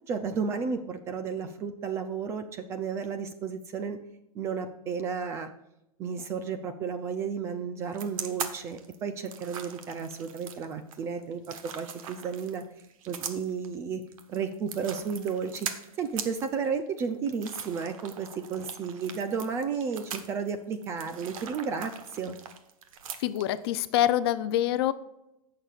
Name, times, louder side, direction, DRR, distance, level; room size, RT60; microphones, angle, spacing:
voice 1, 0.1-4.0 4.4-5.5 6.0-12.6 13.1-14.0 14.3-22.4, right 6 dB, 15° right, 9 dB, 0.3 m, -33 dB
sound 1, 7.9-23.7, right 7 dB, 65° right, 1.2 m, -41 dB
voice 2, 23.2-24.9, left 12 dB, 45° left, 14 dB, 0.5 m, -25 dB
16.5 x 6.6 x 2.4 m, 0.87 s
supercardioid pair, 170°, 19 cm